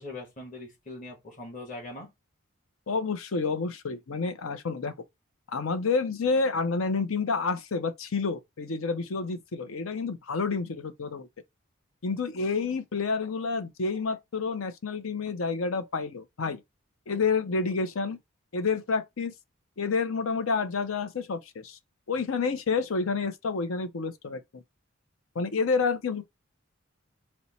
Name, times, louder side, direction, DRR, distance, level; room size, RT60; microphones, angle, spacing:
voice 1, 0.0-2.1, left 2 dB, 35° left, 1.2 m, -41 dB
voice 2, 2.9-4.9 5.5-11.3 12.0-16.6 17.1-18.2 18.5-19.3 19.8-21.8 22.1-24.6 25.3-26.2, left 4 dB, 80° left, 0.6 m, -29 dB
4.3 x 2.1 x 4.1 m
head